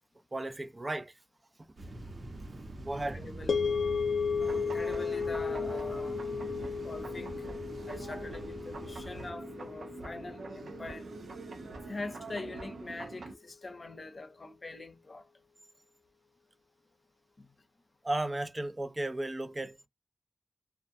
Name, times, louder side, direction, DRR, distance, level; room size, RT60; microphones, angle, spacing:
voice 1, 0.3-1.2 1.6-1.7 2.8-3.2 18.0-19.8, right 1 dB, 30° right, 0.5 m, -35 dB
sound 1, 1.8-9.3, right 2 dB, 65° right, 0.9 m, -45 dB
voice 2, 2.9-3.6 4.6-6.2 6.8-7.5 7.9-11.1 11.9-15.3 17.4-17.5, left 3 dB, 50° left, 0.7 m, -43 dB
sound 2, 3.5-11.8, left 5 dB, 85° left, 0.5 m, -35 dB
sound 3, 4.4-13.3, right 3 dB, 90° right, 0.5 m, -44 dB
2.5 x 2.2 x 2.6 m
wide cardioid pair, 65°, 0 cm